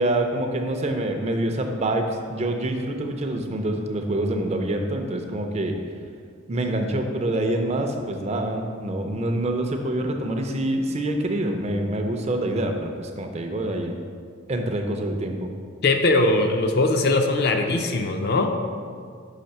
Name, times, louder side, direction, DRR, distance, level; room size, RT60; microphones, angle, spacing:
voice 1, 0.0-5.7 6.5-14.0 14.5-15.5, right 1 dB, 30° right, 4 dB, 0.4 m, -26 dB
voice 2, 15.8-18.5, left 2 dB, 50° left, 5 dB, 0.4 m, -21 dB
5.7 x 3.3 x 5.3 m, 2.1 s
head